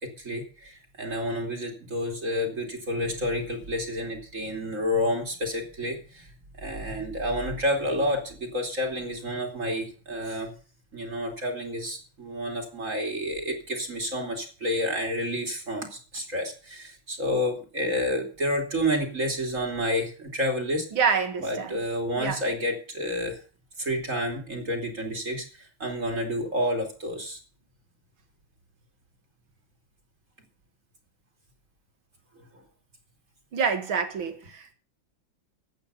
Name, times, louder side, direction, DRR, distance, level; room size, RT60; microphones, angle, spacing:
voice 1, 0.0-6.3 6.6-10.5 10.9-20.9 21.4-23.4 23.8-27.4, equal, 40° right, 3.3 m, -29 dB
voice 2, 20.9-21.8 22.2-22.4 33.5-34.7, right 6 dB, 80° right, 2.7 m, -27 dB
14.0 x 8.8 x 6.9 m
omnidirectional pair, 2.2 m